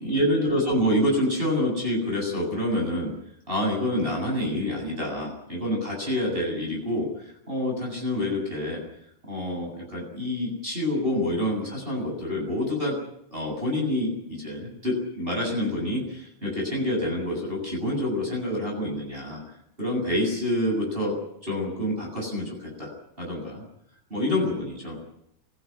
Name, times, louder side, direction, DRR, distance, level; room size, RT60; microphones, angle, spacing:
voice 1, 0.0-3.1 3.5-8.8 9.3-13.0 13.3-19.4 19.8-21.2 21.4-22.9 23.2-23.6 24.1-25.0, left 1 dB, 15° right, -1 dB, 8.2 m, -27 dB
25.5 x 16.5 x 9.9 m, 0.77 s
omnidirectional pair, 3.4 m